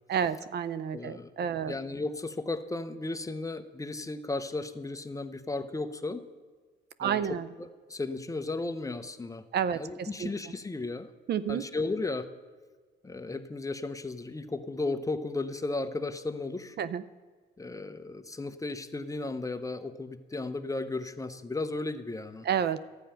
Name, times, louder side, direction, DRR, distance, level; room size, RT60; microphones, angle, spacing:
voice 1, 0.1-1.8 7.0-7.5 9.5-10.3 11.3-11.6 16.8-17.0 22.4-22.8, right 8 dB, 55° right, 16 dB, 0.5 m, -30 dB
voice 2, 0.9-6.2 7.0-9.4 9.7-11.1 11.5-12.3 13.0-16.8 17.6-22.5, left 3 dB, 15° left, 9 dB, 0.8 m, -35 dB
12.0 x 8.9 x 5.7 m, 1.5 s
cardioid pair, 90°, 20 cm